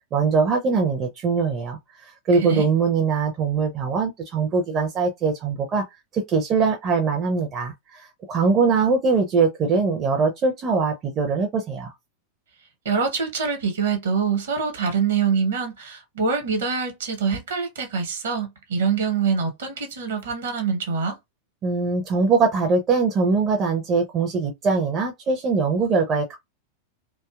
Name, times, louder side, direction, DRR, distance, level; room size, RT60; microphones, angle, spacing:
voice 1, 0.1-1.8 2.3-5.8 6.1-11.9 21.6-26.4, right 4 dB, 30° right, 0.6 m, -22 dB
voice 2, 12.8-21.1, right 5 dB, 65° right, 1.0 m, -25 dB
2.7 x 2.3 x 2.3 m
figure-of-eight pair, 90°, 0 cm